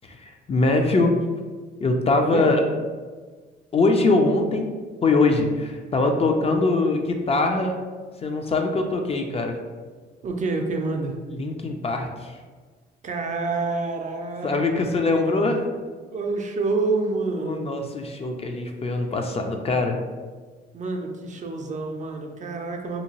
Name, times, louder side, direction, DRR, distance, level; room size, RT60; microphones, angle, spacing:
voice 1, 0.0-1.2 1.8-2.6 3.7-4.7 5.0-7.8 8.2-9.6 11.3-12.4 14.4-15.6 17.4-20.0, left 3 dB, 30° left, 3 dB, 0.4 m, -22 dB
voice 2, 10.2-11.2 13.0-15.5 16.1-17.9 20.7-23.0, right 3 dB, 40° right, 3 dB, 0.4 m, -28 dB
2.8 x 2.6 x 2.8 m, 1.4 s
cardioid pair, 90°, 20 cm